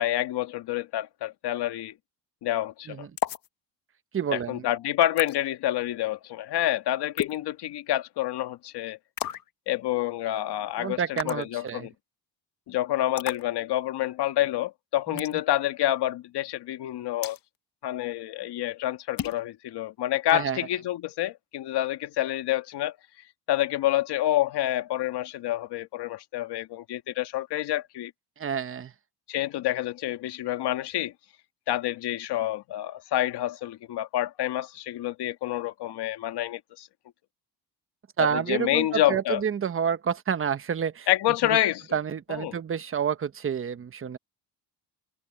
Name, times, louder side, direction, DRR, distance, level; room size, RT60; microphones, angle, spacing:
voice 1, 0.0-1.9 2.4-3.1 4.3-9.0 9.7-11.9 12.7-17.4 17.8-22.9 23.5-28.1 29.3-31.1 31.7-36.9 38.2-39.4 41.1-42.0 42.3-42.6, left 13 dB, 70° left, 2.0 m, -28 dB
sound 1, 3.2-3.5 5.2-5.4 7.2-7.4 9.2-9.5 11.2-11.5 13.2-13.4 15.2-15.4 17.2-17.4 19.2-19.4, left 11 dB, 55° left, 1.4 m, -32 dB
voice 2, 4.1-4.6 10.8-11.9 15.1-15.2 20.3-20.6 28.4-28.9 38.2-41.1 41.9-44.2, right 7 dB, 30° right, 1.0 m, -29 dB
cardioid pair, 105°, 41 cm